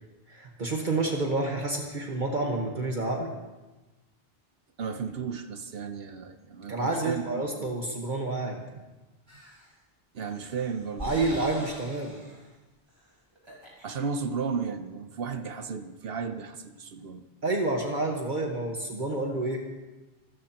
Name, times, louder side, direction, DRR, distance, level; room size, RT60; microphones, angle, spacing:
voice 1, 0.3-3.3 6.7-8.6 11.0-12.2 17.4-19.6, right 2 dB, 50° right, 1 dB, 1.5 m, -29 dB
voice 2, 4.8-7.7 10.1-11.5 13.8-17.2, right 5 dB, 70° right, 9 dB, 1.0 m, -34 dB
sound 1, 9.3-9.7 10.3-12.5 12.9-13.0 13.3-14.0, equal, 25° right, 4.3 m, -43 dB
25.0 x 13.5 x 2.9 m, 1.1 s
omnidirectional pair, 1.0 m